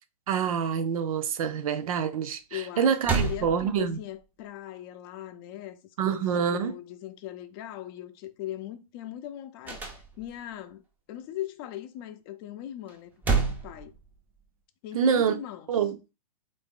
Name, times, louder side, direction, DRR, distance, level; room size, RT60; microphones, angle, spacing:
voice 1, 0.3-4.0 6.0-6.7 14.9-15.3 15.7-16.0, right 7 dB, 60° right, 0.6 m, -26 dB
voice 2, 2.5-5.8 6.0-10.8 11.1-13.9 14.8-15.7, left 12 dB, 35° left, 0.6 m, -40 dB
sound 1, 2.6-2.7 3.0-4.2 9.6-10.5 12.9-14.5, right 5 dB, 10° right, 0.6 m, -30 dB
3.5 x 2.6 x 3.7 m
hypercardioid pair, 130°, 20 cm